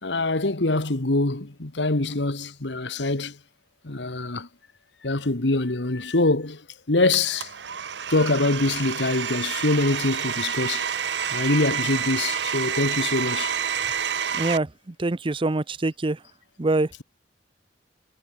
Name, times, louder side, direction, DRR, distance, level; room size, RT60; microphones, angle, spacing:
voice 1, 0.0-3.4 3.8-4.5 5.0-7.5 8.1-10.9 11.3-13.6, left 2 dB, 75° left, 1.7 m, -24 dB
Domestic sounds home sounds, 7.1-14.6, right 8 dB, 70° right, 1.0 m, -28 dB
voice 2, 14.3-16.2 16.6-16.9, right 2 dB, 30° right, 0.6 m, -25 dB
head